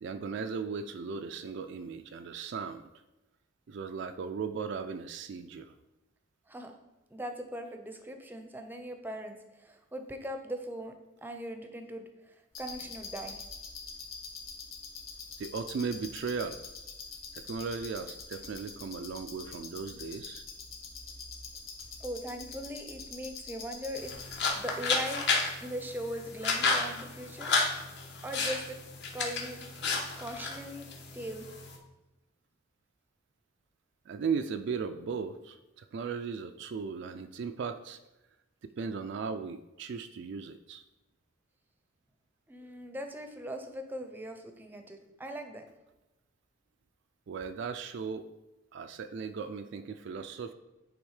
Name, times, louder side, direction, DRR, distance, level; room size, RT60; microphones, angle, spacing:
voice 1, 0.0-2.9 3.7-5.7 15.4-16.6 17.3-20.4 34.1-38.0 38.8-40.8 47.3-48.3 48.7-50.5, right 5 dB, 55° right, 8 dB, 0.3 m, -37 dB
voice 2, 7.1-11.0 11.2-13.4 22.0-24.2 24.5-25.3 25.6-27.5 28.2-28.8 29.1-29.8 30.2-30.9 31.1-31.5 42.5-45.6, right 1 dB, 10° right, 5 dB, 0.6 m, -40 dB
sound 1, 12.5-24.5, left 5 dB, 85° left, 1.7 m, -45 dB
sound 2, 24.0-31.8, left 4 dB, 55° left, 1.0 m, -32 dB
8.6 x 3.5 x 4.8 m, 0.99 s
head